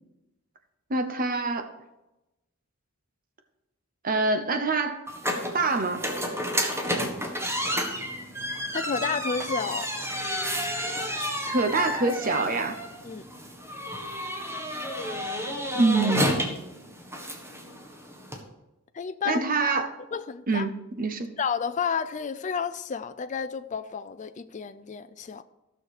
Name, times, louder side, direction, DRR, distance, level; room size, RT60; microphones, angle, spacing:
voice 1, 0.9-1.7 4.0-5.0 5.5-6.0 11.5-12.8 15.7-16.4 19.3-19.9 20.5-21.3, right 3 dB, 40° right, 8 dB, 0.9 m, -25 dB
sound 1, 5.1-18.4, equal, 10° right, 1.6 m, -31 dB
voice 2, 8.7-9.9 13.0-13.3 18.9-19.4 20.1-20.7 21.4-25.4, left 6 dB, 35° left, 10 dB, 0.4 m, -31 dB
15.0 x 6.5 x 4.9 m, 0.98 s
head